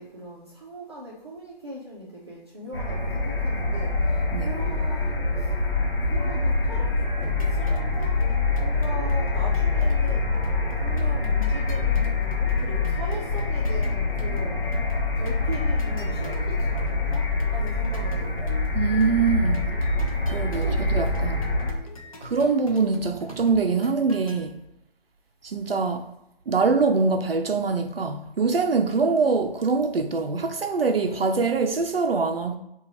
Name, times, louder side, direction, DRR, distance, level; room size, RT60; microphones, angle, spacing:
voice 1, 0.0-5.5 6.1-8.2 8.6-10.4 10.8-14.7 15.1-18.4 20.4-21.3, right 1 dB, 25° right, 0.6 m, -39 dB
sound 1, 2.7-21.7, left 3 dB, 65° left, 0.9 m, -25 dB
sound 2, 7.2-24.4, left 1 dB, 35° left, 0.5 m, -43 dB
voice 2, 18.7-19.6 20.3-21.4 22.2-24.6 25.4-26.0 26.5-32.6, right 4 dB, 70° right, 0.5 m, -24 dB
4.0 x 2.3 x 2.9 m
figure-of-eight pair, 150°, 30 cm